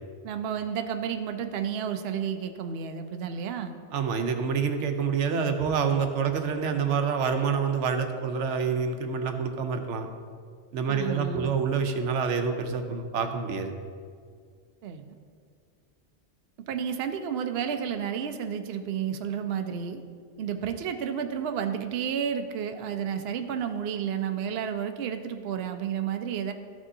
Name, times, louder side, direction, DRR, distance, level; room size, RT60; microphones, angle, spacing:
voice 1, 0.2-3.7 10.9-11.5 14.8-15.1 16.7-20.0 20.4-26.5, right 8 dB, 65° right, 6 dB, 0.8 m, -31 dB
voice 2, 3.9-10.1 10.7-13.7, right 6 dB, 90° right, 6 dB, 1.0 m, -27 dB
13.0 x 6.2 x 2.7 m, 2.1 s
omnidirectional pair, 1.2 m